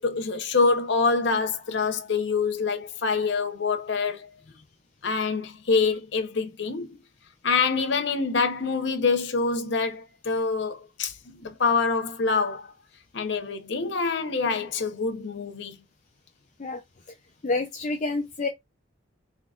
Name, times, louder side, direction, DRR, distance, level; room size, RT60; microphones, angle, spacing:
voice 1, 0.0-4.3 5.0-7.0 7.4-12.7 13.1-15.7, left 4 dB, 60° left, 0.8 m, -26 dB
voice 2, 17.4-18.5, left 3 dB, 35° left, 0.4 m, -28 dB
3.8 x 3.6 x 2.4 m
head